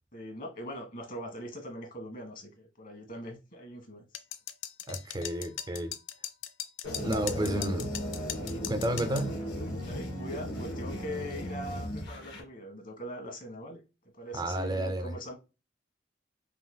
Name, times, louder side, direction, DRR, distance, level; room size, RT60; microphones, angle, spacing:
voice 1, 0.1-4.1 7.2-7.7 9.1-9.2 9.8-13.8 14.2-15.4, equal, 45° left, 1.6 m, -42 dB
sound 1, 4.1-9.3, left 10 dB, 80° left, 0.5 m, -39 dB
voice 2, 4.9-5.9 7.0-7.9 8.7-9.3 14.3-15.1, right 1 dB, 20° right, 0.4 m, -31 dB
sound 2, 6.8-12.4, left 1 dB, 65° left, 2.0 m, -36 dB
5.4 x 2.8 x 2.2 m
head